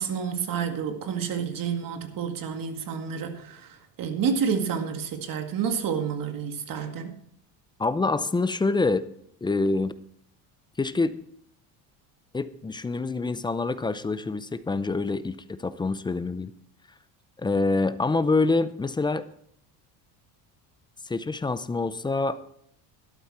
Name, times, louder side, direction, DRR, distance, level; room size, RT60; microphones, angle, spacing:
voice 1, 0.0-3.6 4.0-7.1, right 7 dB, 45° right, 6 dB, 1.9 m, -29 dB
voice 2, 7.8-9.1 9.4-9.9 10.8-11.1 12.3-16.5 17.4-19.2 21.0-22.4, left 3 dB, 10° left, 14 dB, 0.4 m, -26 dB
12.5 x 11.5 x 4.2 m, 0.68 s
cardioid pair, 125°, 45 cm